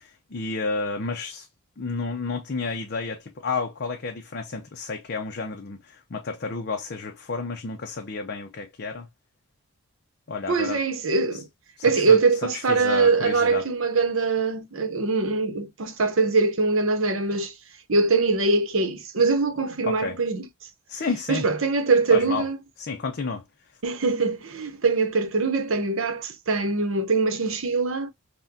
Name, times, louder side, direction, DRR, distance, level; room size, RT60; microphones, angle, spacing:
voice 1, 0.0-1.5 1.8-9.1 10.3-10.8 11.8-12.2 12.5-13.7 19.8-20.2 20.9-21.4 22.1-22.4 22.8-23.4, left 4 dB, 45° left, 0.5 m, -31 dB
voice 2, 10.5-11.5 11.8-17.5 17.9-20.5 21.3-22.6 23.8-28.1, right 4 dB, 60° right, 0.8 m, -23 dB
5.8 x 2.2 x 2.6 m
head